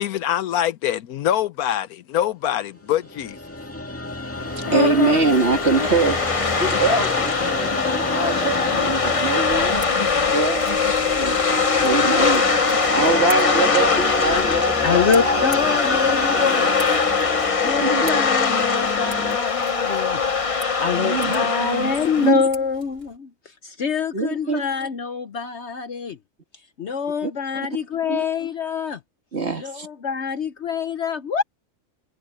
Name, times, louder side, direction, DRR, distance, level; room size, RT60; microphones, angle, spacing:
voice 1, 0.0-3.4, left 11 dB, 75° left, 1.2 m, -24 dB
sound 1, 2.9-19.4, left 1 dB, 10° left, 1.9 m, -29 dB
sound 2, 4.4-22.3, left 5 dB, 30° left, 0.7 m, -22 dB
voice 2, 4.7-6.2 6.6-9.8 10.2-10.6 11.2-12.5 12.9-15.2 17.8-18.2 20.8-22.4 24.1-24.6 27.2-27.3 28.1-28.2 29.3-29.9, right 4 dB, 45° right, 2.3 m, -24 dB
Scissors, 9.5-23.2, right 3 dB, 75° right, 4.2 m, -44 dB
voice 3, 14.8-16.7 17.3-20.2 20.5-23.3 23.6-26.2 26.8-29.0 29.6-31.4, left 6 dB, 55° left, 0.9 m, -25 dB
omnidirectional pair, 1.6 m